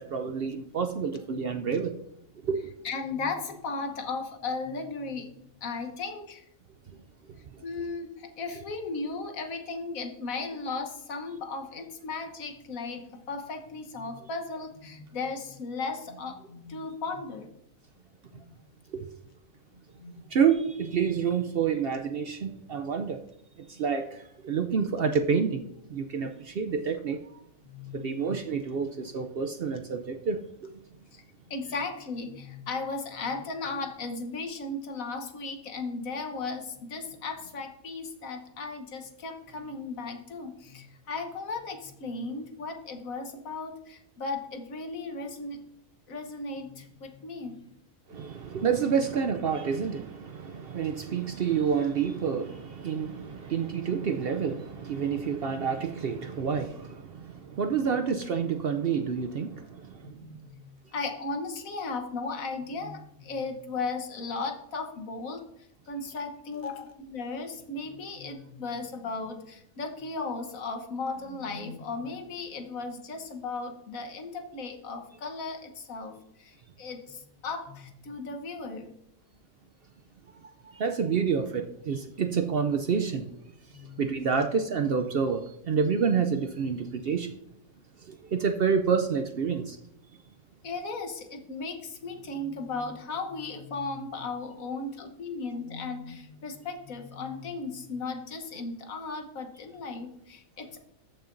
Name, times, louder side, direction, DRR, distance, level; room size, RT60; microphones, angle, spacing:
voice 1, 0.0-1.9 2.4-2.7 7.5-7.6 18.9-19.1 20.3-23.2 23.6-25.6 25.9-27.2 27.9-30.7 48.1-60.2 80.7-83.3 84.0-87.3 88.0-89.8, right 6 dB, 60° right, 7 dB, 0.6 m, -28 dB
voice 2, 2.8-5.3 5.6-6.4 7.6-17.5 18.3-18.4 19.7-20.4 27.6-28.3 31.1-45.6 46.1-47.6 57.9-58.0 60.0-60.6 60.9-65.4 65.9-78.9 83.7-84.0 84.3-84.4 90.6-100.8, left 3 dB, 80° left, 5 dB, 1.5 m, -36 dB
14.0 x 5.7 x 2.6 m, 0.78 s
omnidirectional pair, 1.4 m